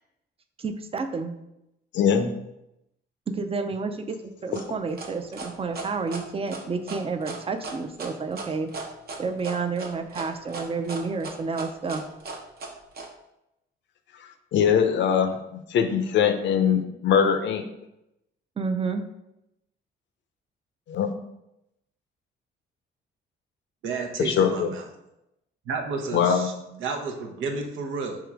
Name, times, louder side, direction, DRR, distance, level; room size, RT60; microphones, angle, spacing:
voice 1, 0.6-1.3 3.3-8.7 9.2-12.1 18.6-19.0, right 4 dB, 30° right, 8 dB, 0.5 m, -30 dB
voice 2, 1.9-2.3 14.5-17.6 20.9-21.1 24.2-24.7 26.1-26.5, left 7 dB, 65° left, 8 dB, 0.6 m, -22 dB
sound 1, 4.5-13.1, right 3 dB, 50° right, 0.8 m, -37 dB
voice 3, 23.8-24.8 25.7-26.5 26.8-28.2, right 4 dB, 85° right, 2 dB, 0.8 m, -31 dB
3.6 x 3.0 x 4.6 m, 0.87 s
cardioid pair, 90°, 20 cm